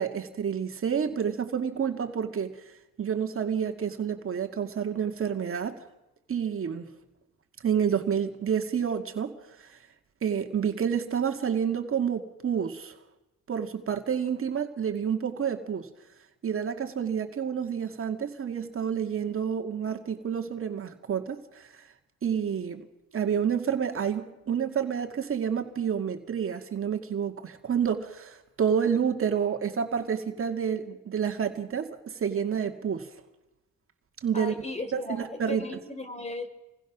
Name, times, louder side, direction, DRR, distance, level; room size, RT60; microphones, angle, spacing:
voice 1, 0.0-2.5 3.0-5.8 6.3-6.9 7.6-9.3 10.2-12.9 13.5-15.9 16.4-21.7 22.2-22.9 23.1-33.1 34.2-34.5 34.9-35.7, right 7 dB, 45° right, 2.1 m, -29 dB
voice 2, 34.3-36.5, left 2 dB, 20° left, 3.7 m, -36 dB
28.5 x 20.5 x 6.1 m
cardioid pair, 90°, 30 cm